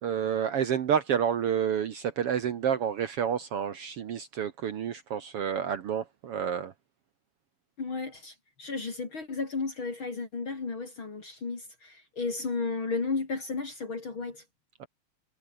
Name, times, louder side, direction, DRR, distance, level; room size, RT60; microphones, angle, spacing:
voice 1, 0.0-6.7 14.8-14.9, right 8 dB, 60° right, 2.0 m, -29 dB
voice 2, 7.8-14.4, left 4 dB, 40° left, 4.0 m, -33 dB
omnidirectional pair, 3.4 m